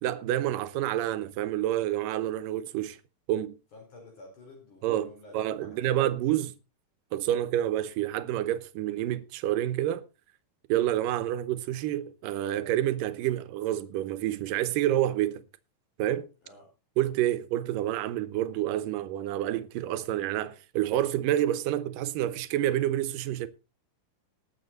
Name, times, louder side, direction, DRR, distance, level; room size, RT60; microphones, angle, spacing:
voice 1, 0.0-3.0 3.3-3.6 4.8-5.1 5.3-6.5 7.1-10.1 10.7-15.4 16.0-16.3 17.0-23.5, right 13 dB, 80° right, 2.5 m, -28 dB
voice 2, 3.7-5.9 16.4-16.7, left 2 dB, 60° left, 6.1 m, -51 dB
19.5 x 7.1 x 4.1 m
omnidirectional pair, 4.0 m